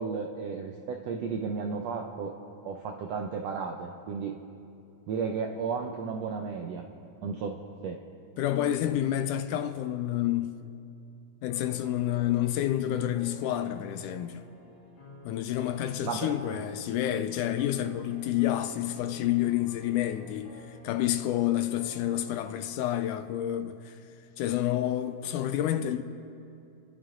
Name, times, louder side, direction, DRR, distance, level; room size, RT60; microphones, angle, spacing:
voice 1, 0.0-2.3 2.6-4.3 5.1-6.8 7.2-7.6 7.8-8.0 16.0-16.6, right 5 dB, 80° right, 1.5 m, -33 dB
voice 2, 8.4-10.6 11.4-14.4 15.2-24.0 24.4-26.0, left 12 dB, 80° left, 1.9 m, -29 dB
sound 1, 11.5-22.7, left 2 dB, 60° left, 3.7 m, -51 dB
30.0 x 11.5 x 3.8 m
omnidirectional pair, 3.9 m